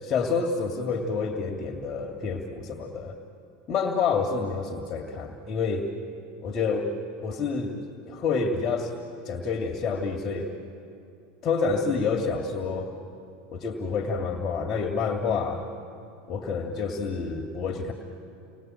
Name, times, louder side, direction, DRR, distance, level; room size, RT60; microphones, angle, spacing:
voice 1, 0.0-3.2 3.7-5.9 6.4-6.9 7.2-7.8 8.1-8.9 9.3-10.5 11.4-12.9 13.5-15.6 16.3-17.9, left 5 dB, 40° left, 3 dB, 2.2 m, -28 dB
30.0 x 20.0 x 9.0 m, 2.6 s
hypercardioid pair, 100°, 0 cm